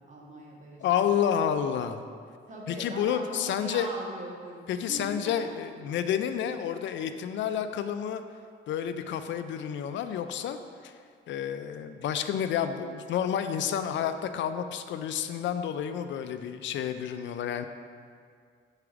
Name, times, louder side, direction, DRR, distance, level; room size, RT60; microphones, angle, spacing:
voice 1, 0.0-1.1 2.5-5.9, right 1 dB, 35° right, -2 dB, 1.5 m, -41 dB
voice 2, 0.8-2.0 2.7-3.9 4.7-8.2 8.7-10.9 11.3-17.7, left 9 dB, 70° left, 9 dB, 0.4 m, -30 dB
4.8 x 4.8 x 6.0 m, 2.1 s
cardioid pair, 90°, 20 cm